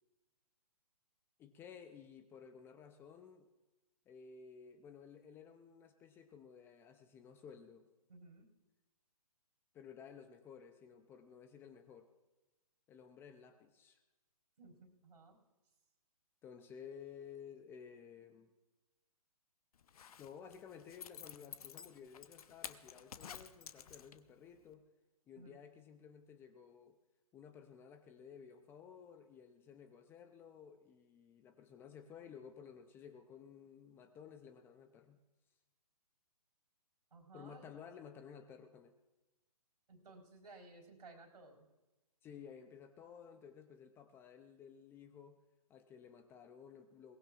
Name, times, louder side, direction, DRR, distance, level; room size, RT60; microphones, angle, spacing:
voice 1, 1.4-3.5 4.1-7.9 9.7-12.1 12.9-14.0 16.4-18.5 20.2-24.9 25.3-27.0 27.3-35.2 37.3-39.0 42.2-45.4 45.7-47.2, left 7 dB, 10° left, 9 dB, 0.5 m, -55 dB
voice 2, 8.1-8.5 14.6-15.4 25.3-25.6 37.1-37.7 39.9-41.7, right 3 dB, 80° right, 1 dB, 4.0 m, -57 dB
Zipper (clothing), 19.8-24.4 24.7-24.8, left 8 dB, 65° left, 0.8 m, -51 dB
22.0 x 18.5 x 2.4 m, 1.1 s
hypercardioid pair, 145°, 20 cm